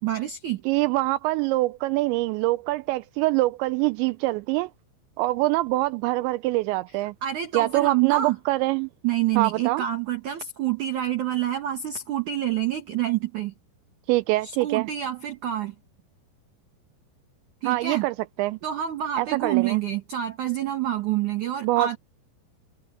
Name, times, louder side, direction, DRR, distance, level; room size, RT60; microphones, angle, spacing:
voice 1, 0.0-0.6 7.2-8.4 9.0-13.5 14.4-15.7 17.6-18.1 18.6-22.0, right 12 dB, 55° right, 2.3 m, -27 dB
voice 2, 0.7-4.7 5.2-7.1 7.5-8.9 9.4-9.8 14.1-14.9 17.6-18.6 19.2-19.8 21.6-22.0, right 19 dB, 85° right, 2.8 m, -24 dB
omnidirectional pair, 5.3 m